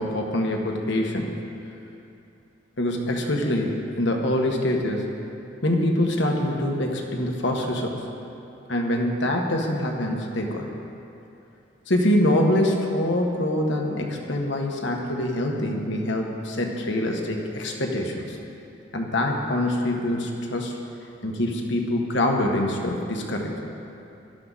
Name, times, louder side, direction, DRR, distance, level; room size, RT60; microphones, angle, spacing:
voice 1, 0.0-1.4 2.8-5.1 5.6-8.0 8.7-10.7 11.9-18.4 18.9-20.7 21.2-23.5, left 1 dB, 65° left, 1 dB, 1.6 m, -25 dB
17.5 x 13.0 x 4.2 m, 2.8 s
head